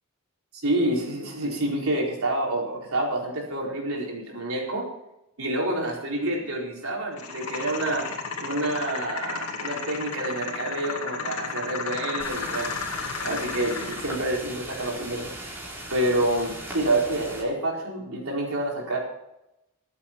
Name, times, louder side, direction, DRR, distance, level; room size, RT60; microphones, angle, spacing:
voice 1, 0.5-4.9 5.4-8.1 8.4-12.8 13.2-15.4 15.9-19.0, right 1 dB, 70° right, -1 dB, 4.3 m, -28 dB
sound 1, 7.2-14.2, left 5 dB, 80° left, 2.2 m, -33 dB
sound 2, 12.2-17.4, right 1 dB, 10° right, 3.9 m, -38 dB
24.0 x 8.5 x 4.5 m, 0.89 s
head